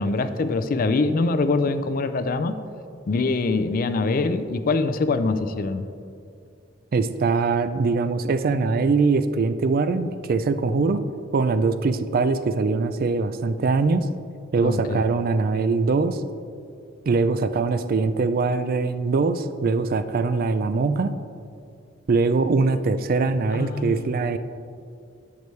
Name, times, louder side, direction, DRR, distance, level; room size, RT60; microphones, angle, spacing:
voice 1, 0.0-2.6 3.1-5.8 14.6-15.0 23.5-24.3, left 3 dB, 45° left, 11 dB, 0.4 m, -24 dB
voice 2, 6.9-11.0 11.3-14.1 14.5-16.2 17.1-21.1 22.1-24.4, right 4 dB, 50° right, 11 dB, 0.4 m, -22 dB
10.5 x 6.9 x 3.2 m, 2.4 s
head